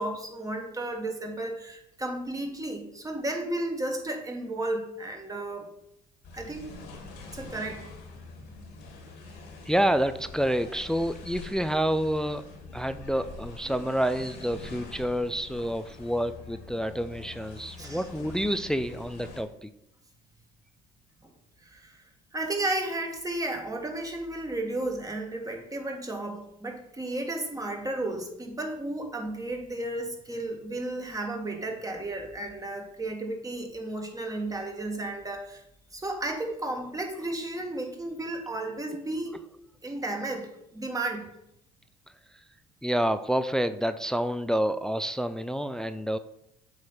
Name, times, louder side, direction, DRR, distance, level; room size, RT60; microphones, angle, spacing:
voice 1, 0.0-5.7 6.3-6.7 7.3-7.9 17.8-18.0 21.2-21.3 21.6-22.0 22.3-35.6 35.9-39.3 39.8-41.3, right 2 dB, 20° right, 3 dB, 1.6 m, -33 dB
sound 1, 6.2-19.4, left 3 dB, 75° left, 2.1 m, -45 dB
voice 2, 9.6-12.4 12.7-19.7 37.1-37.3 39.3-39.4 42.8-46.2, equal, 5° left, 12 dB, 0.4 m, -28 dB
8.2 x 3.2 x 5.7 m, 0.78 s
supercardioid pair, 70°, 19 cm